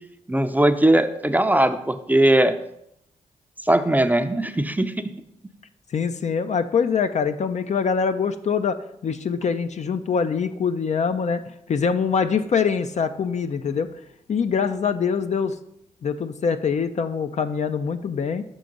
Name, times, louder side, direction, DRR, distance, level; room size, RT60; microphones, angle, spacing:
voice 1, 0.3-2.6 3.6-4.9, right 1 dB, 10° right, 9 dB, 0.5 m, -19 dB
voice 2, 5.9-11.4 11.7-13.9 14.3-15.5 16.0-18.4, left 6 dB, 50° left, 9 dB, 0.4 m, -24 dB
5.9 x 3.8 x 5.2 m, 0.77 s
supercardioid pair, 45°, 15 cm